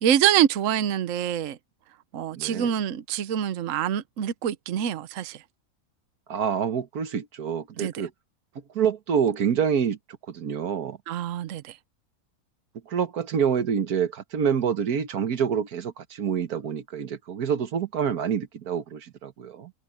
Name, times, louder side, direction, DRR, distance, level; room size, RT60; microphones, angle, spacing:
voice 1, 0.0-1.6 2.1-5.4 7.8-7.9 11.1-11.8, right 10 dB, 65° right, 1.1 m, -25 dB
voice 2, 2.4-2.7 6.3-8.1 8.6-10.0 10.3-11.0 12.9-19.7, right 7 dB, 85° right, 1.7 m, -27 dB
omnidirectional pair, 1.6 m